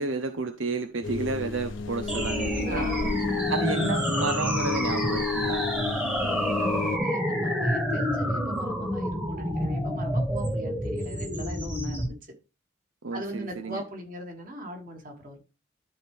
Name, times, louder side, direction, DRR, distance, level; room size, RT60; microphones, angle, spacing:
voice 1, 0.0-3.0 3.5-5.6 13.0-13.8, right 3 dB, 80° right, 0.8 m, -31 dB
sound 1, 1.0-7.0, left 5 dB, 75° left, 1.0 m, -32 dB
sound 2, 2.1-12.1, equal, 5° right, 1.6 m, -28 dB
voice 2, 2.7-3.2 6.6-12.3 13.1-15.4, right 1 dB, 45° right, 2.5 m, -39 dB
12.5 x 4.6 x 3.5 m
head